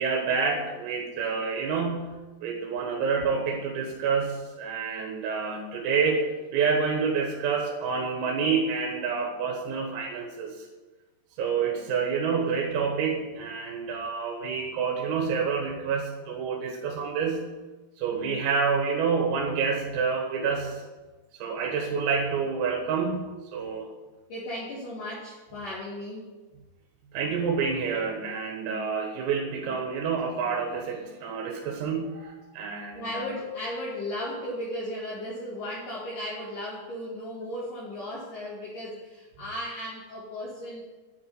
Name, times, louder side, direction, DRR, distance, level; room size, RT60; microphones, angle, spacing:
voice 1, 0.0-10.7 11.4-17.4 18.0-20.8 21.4-23.9 27.1-33.3, right 5 dB, 90° right, 0 dB, 4.2 m, -28 dB
voice 2, 24.3-26.3 32.9-41.0, left 1 dB, 50° left, -5 dB, 3.4 m, -35 dB
10.5 x 9.3 x 9.4 m, 1.2 s
omnidirectional pair, 5.9 m